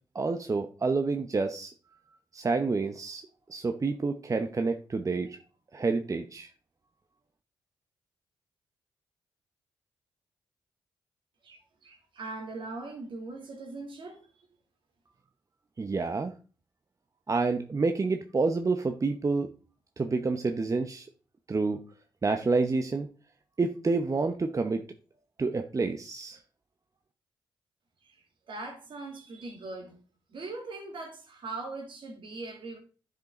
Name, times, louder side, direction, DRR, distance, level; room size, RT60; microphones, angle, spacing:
voice 1, 0.1-1.7 2.3-3.2 3.5-5.4 5.7-6.5 15.8-16.3 17.3-19.5 20.0-21.1 21.5-21.8 22.2-23.1 23.6-24.8 25.4-26.4, right 3 dB, 35° right, 0.8 m, -28 dB
voice 2, 11.4-14.5 28.0-30.0 30.3-32.8, right 3 dB, 60° right, 2.6 m, -41 dB
10.5 x 5.2 x 3.8 m
supercardioid pair, 45°, 9 cm